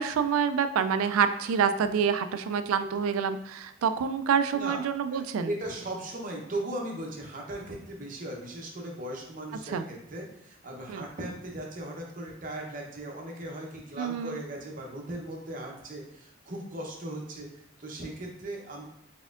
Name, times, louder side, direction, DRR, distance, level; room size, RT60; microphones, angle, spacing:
voice 1, 0.0-5.5 9.7-9.8 10.9-11.0 14.0-14.4, right 7 dB, 85° right, 10 dB, 0.3 m, -27 dB
voice 2, 5.1-17.5 17.8-18.8, right 1 dB, 40° right, 0 dB, 0.7 m, -38 dB
4.1 x 3.6 x 2.4 m, 0.86 s
head